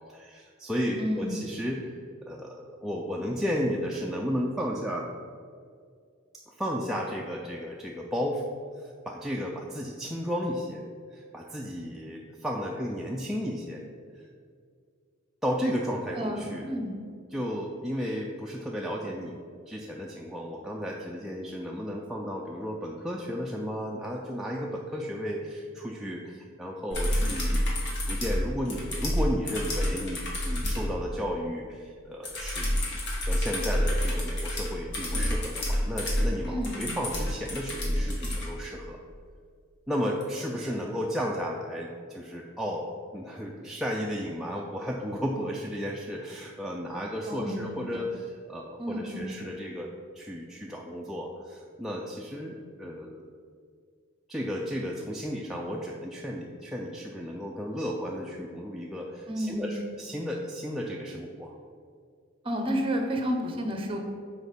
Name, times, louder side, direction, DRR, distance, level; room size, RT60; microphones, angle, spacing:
voice 1, 0.1-2.0 2.3-5.1 6.3-8.4 8.8-10.8 11.1-13.8 14.1-14.2 15.4-16.7 17.3-19.4 19.7-32.7 33.1-39.0 39.9-53.2 54.3-61.5, equal, ahead, -3 dB, 0.4 m, -33 dB
voice 2, 1.0-1.5 16.1-16.9 36.5-37.0 47.3-48.0 48.8-49.3 59.3-59.8 62.4-64.0, equal, 25° right, 3 dB, 0.8 m, -31 dB
sound 1, 26.9-30.9 32.2-38.5 40.2-40.3, equal, 55° left, 1.6 m, -28 dB
6.2 x 4.6 x 5.2 m, 2.2 s
head